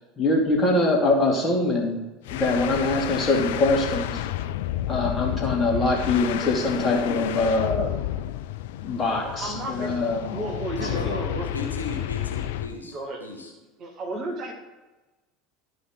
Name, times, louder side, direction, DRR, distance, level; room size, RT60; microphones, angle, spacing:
voice 1, 0.2-2.0 2.3-4.2 4.9-7.9 8.8-10.5 10.8-11.1, left 2 dB, 30° left, -1 dB, 2.6 m, -23 dB
sound 1, 2.2-12.8, left 13 dB, 65° left, 0.3 m, -31 dB
voice 2, 9.2-11.6 12.8-13.2 13.8-14.5, right 2 dB, 40° right, 1 dB, 2.1 m, -34 dB
voice 3, 10.7-13.5, left 2 dB, 85° left, 0 dB, 1.3 m, -35 dB
12.0 x 5.2 x 3.9 m, 1.1 s
figure-of-eight pair, 70°, 0 cm